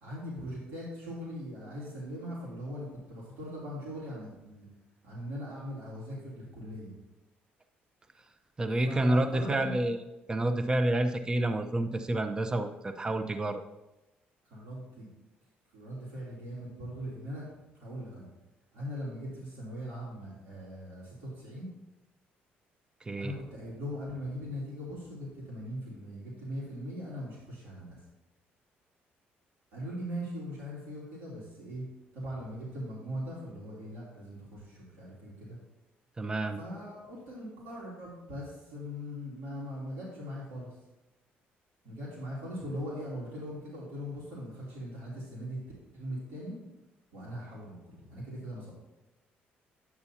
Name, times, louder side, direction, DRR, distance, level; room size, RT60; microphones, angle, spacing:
voice 1, 0.0-4.7 5.0-6.9 8.8-9.8 14.4-15.1 15.7-17.5 17.8-18.3 18.7-21.7 23.2-28.0 29.7-31.8 32.1-35.6 36.6-40.7 41.8-45.6 45.9-46.6 47.1-48.7, equal, 90° right, -6 dB, 2.9 m, -40 dB
voice 2, 8.6-10.0 10.3-13.6 23.1-23.3 36.2-36.6, right 1 dB, 20° right, 8 dB, 0.5 m, -29 dB
9.8 x 6.8 x 2.8 m, 0.98 s
cardioid pair, 100°, 4 cm